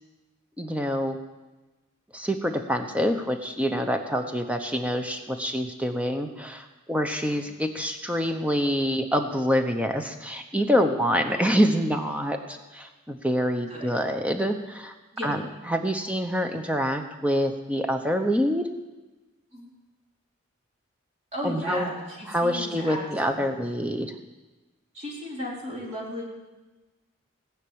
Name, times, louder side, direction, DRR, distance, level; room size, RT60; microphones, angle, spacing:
voice 1, 0.6-1.2 2.1-14.9 15.2-15.4 15.7-18.7 21.4-21.9 22.3-24.1, equal, 5° right, 5 dB, 0.9 m, -26 dB
voice 2, 21.3-23.8 24.9-26.2, equal, 30° right, -4 dB, 3.3 m, -36 dB
17.5 x 5.9 x 8.7 m, 1.2 s
head